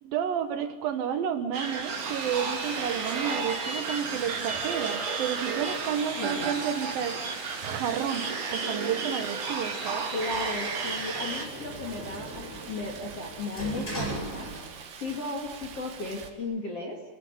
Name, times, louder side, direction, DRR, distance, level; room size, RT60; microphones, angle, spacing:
voice 1, 0.0-10.1, right 8 dB, 75° right, 7 dB, 2.2 m, -31 dB
sound 1, 1.5-11.5, right 4 dB, 40° right, 2.8 m, -32 dB
Stream, 2.0-16.3, right 6 dB, 60° right, 3.7 m, -46 dB
voice 2, 6.2-6.6 10.1-14.5 15.0-17.0, left 3 dB, 40° left, 1 dB, 2.5 m, -35 dB
Sliding door, 10.3-15.1 15.4-16.4, right 2 dB, 10° left, 7.3 m, -39 dB
29.5 x 15.5 x 9.4 m, 1.3 s
omnidirectional pair, 5.9 m